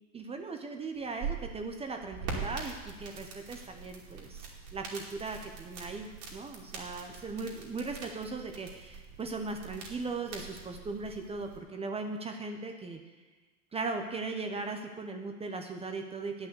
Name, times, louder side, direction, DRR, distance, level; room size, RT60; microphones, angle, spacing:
voice 1, 0.1-13.0 13.7-16.5, right 3 dB, 15° right, 4 dB, 0.7 m, -38 dB
sound 1, 1.0-11.6, right 5 dB, 45° right, 2.5 m, -43 dB
9.3 x 5.6 x 7.8 m, 1.3 s
supercardioid pair, 125°, 41 cm